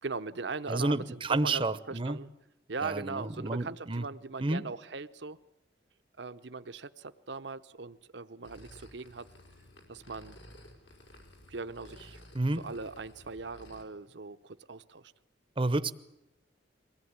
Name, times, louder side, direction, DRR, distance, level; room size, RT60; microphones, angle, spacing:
voice 1, 0.0-2.3 2.7-5.4 6.2-9.3 9.9-10.4 11.5-12.2 12.5-15.1, right 4 dB, 65° right, 11 dB, 0.8 m, -40 dB
voice 2, 0.7-2.2 2.8-4.0 4.4-4.6 12.3-12.6 15.6-15.9, right 2 dB, 25° right, 15 dB, 0.8 m, -30 dB
sound 1, 8.4-13.8, left 1 dB, 75° left, 4.8 m, -54 dB
23.0 x 17.5 x 9.6 m, 0.97 s
head